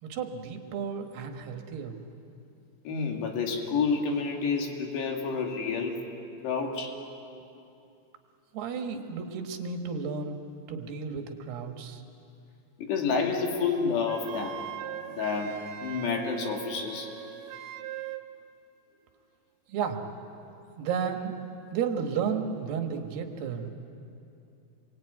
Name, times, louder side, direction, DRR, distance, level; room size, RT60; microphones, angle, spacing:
voice 1, 0.0-2.0 8.5-10.4 10.7-12.0 19.7-20.0 20.8-21.3 21.7-23.7, right 6 dB, 65° right, 4 dB, 3.3 m, -33 dB
voice 2, 2.8-6.0 6.4-7.0 12.8-14.6 15.1-17.1, left 5 dB, 65° left, 1 dB, 4.4 m, -29 dB
Wind instrument woodwind instrument, 14.1-18.3, right 12 dB, 90° right, 1.9 m, -40 dB
27.5 x 22.5 x 9.3 m, 2.7 s
omnidirectional pair, 5.5 m